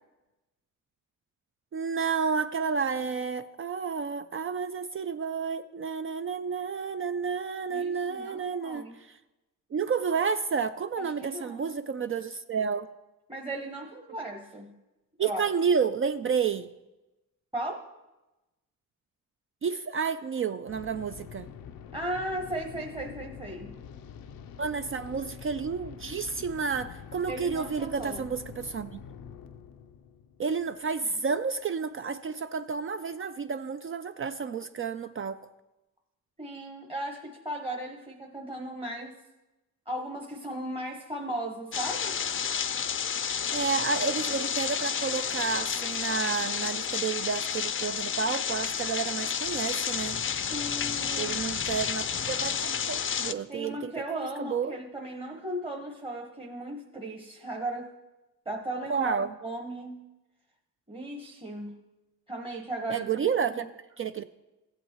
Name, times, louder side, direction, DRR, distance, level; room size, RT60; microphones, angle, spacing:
voice 1, 1.7-9.2 9.7-12.9 15.2-16.7 19.6-21.5 24.6-29.0 30.4-35.5 43.5-50.2 51.2-54.8 58.9-59.3 62.9-63.7 64.0-64.2, right 6 dB, 40° right, 0.4 m, -31 dB
voice 2, 7.7-8.9 11.0-11.7 13.3-14.7 15.2-15.5 17.5-17.8 21.9-23.7 27.3-28.3 36.4-39.1 39.9-42.1 50.5-51.3 53.5-57.9 58.4-59.2 59.4-60.0 60.9-61.7 62.3-63.3 63.6-63.7, right 1 dB, 15° right, 1.1 m, -36 dB
sound 1, 20.7-31.4, left 7 dB, 90° left, 0.6 m, -46 dB
sound 2, 41.7-53.3, left 7 dB, 35° left, 0.5 m, -31 dB
15.0 x 8.2 x 3.0 m
cardioid pair, 70°, 34 cm